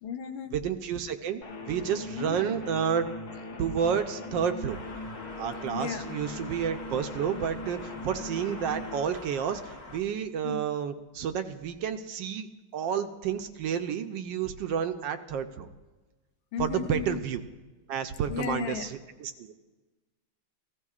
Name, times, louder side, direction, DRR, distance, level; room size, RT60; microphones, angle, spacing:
voice 1, 0.0-0.5 2.1-2.4 5.7-6.0 10.4-10.6 16.5-17.2 18.3-18.9, left 7 dB, 80° left, 6 dB, 1.5 m, -34 dB
voice 2, 0.5-3.1 3.6-4.8 5.4-12.5 12.7-15.7 16.6-17.4 17.9-19.5, right 8 dB, 75° right, 8 dB, 1.2 m, -30 dB
sound 1, 1.4-9.0, left 2 dB, 60° left, 1.3 m, -40 dB
sound 2, 4.7-10.0, left 3 dB, 30° left, 1.1 m, -46 dB
15.5 x 14.5 x 2.4 m, 1.2 s
omnidirectional pair, 2.1 m